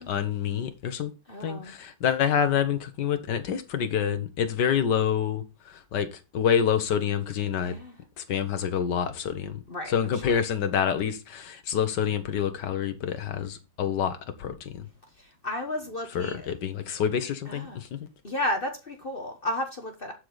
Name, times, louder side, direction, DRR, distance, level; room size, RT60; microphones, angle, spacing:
voice 1, 0.0-1.1 1.4-6.1 6.3-7.7 8.2-9.6 9.9-14.8 16.2-18.0, left 8 dB, 70° left, 1.8 m, -27 dB
voice 2, 1.3-1.7 7.7-8.0 9.7-10.4 15.2-16.5 17.4-17.8 18.2-20.1, left 1 dB, 35° left, 1.2 m, -33 dB
11.0 x 5.0 x 4.0 m
omnidirectional pair, 1.9 m